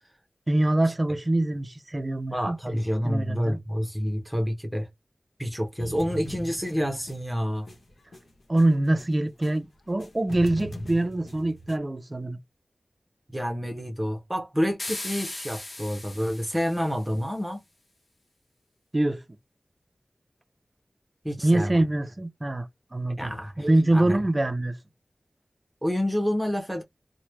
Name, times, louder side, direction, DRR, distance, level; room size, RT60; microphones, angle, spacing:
voice 1, 0.5-2.8 3.0-3.6 8.5-12.4 18.9-19.2 21.4-23.3 23.6-24.8, right 1 dB, 35° right, 0.4 m, -24 dB
voice 2, 2.3-4.9 5.4-7.7 13.3-17.6 21.2-21.8 23.2-24.2 25.8-26.8, equal, 10° right, 0.8 m, -28 dB
sound 1, 5.8-9.6 9.9-11.8, equal, 75° left, 0.9 m, -40 dB
sound 2, 14.8-17.2, left 2 dB, 50° left, 1.0 m, -38 dB
3.0 x 2.1 x 3.1 m
wide cardioid pair, 70°, 0 cm